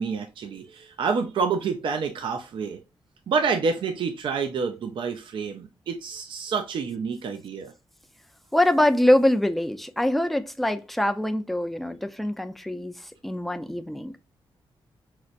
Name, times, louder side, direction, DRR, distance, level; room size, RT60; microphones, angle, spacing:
voice 1, 0.0-2.8 3.3-7.7, right 5 dB, 65° right, 0.5 m, -28 dB
voice 2, 8.5-14.1, left 1 dB, ahead, 0.5 m, -24 dB
5.8 x 2.1 x 2.5 m
cardioid pair, 95°, 9 cm